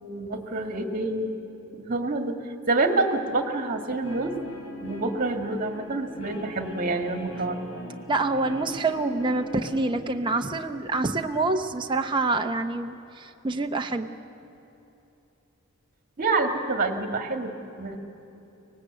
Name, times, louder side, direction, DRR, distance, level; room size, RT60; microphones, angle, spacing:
voice 1, 0.0-1.3 1.7-2.4 2.7-4.3 4.8-7.6 16.2-18.0, right 2 dB, 40° right, 6 dB, 1.9 m, -27 dB
Guitar, 4.0-10.6, left 1 dB, 75° left, 3.4 m, -40 dB
voice 2, 8.1-14.1, right 3 dB, 20° right, 4 dB, 0.8 m, -26 dB
24.0 x 19.0 x 8.3 m, 2.9 s
head